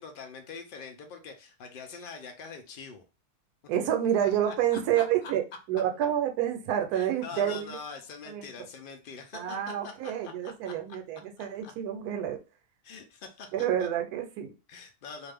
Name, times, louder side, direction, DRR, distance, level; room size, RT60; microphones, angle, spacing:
voice 1, 0.0-3.0 4.4-5.3 6.9-10.7 11.4-11.7 12.8-13.5 13.8-13.9 14.7-15.3, left 5 dB, 75° left, 0.4 m, -44 dB
voice 2, 3.7-5.4 5.7-7.8 8.3-8.5 9.3-12.4 13.5-14.5, right 10 dB, 80° right, 1.1 m, -28 dB
2.5 x 2.4 x 3.4 m
omnidirectional pair, 1.6 m